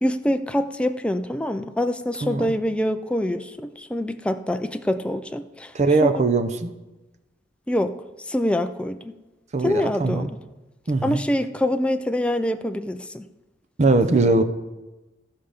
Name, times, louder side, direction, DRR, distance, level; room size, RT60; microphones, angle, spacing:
voice 1, 0.0-5.7 6.0-6.1 7.7-9.2 9.6-10.4 11.0-13.3, left 1 dB, 5° left, 8 dB, 0.4 m, -25 dB
voice 2, 2.2-2.5 5.7-6.7 9.5-10.3 10.9-11.2 13.8-14.4, right 3 dB, 40° right, 9 dB, 0.6 m, -20 dB
15.0 x 5.6 x 5.1 m, 1.1 s
head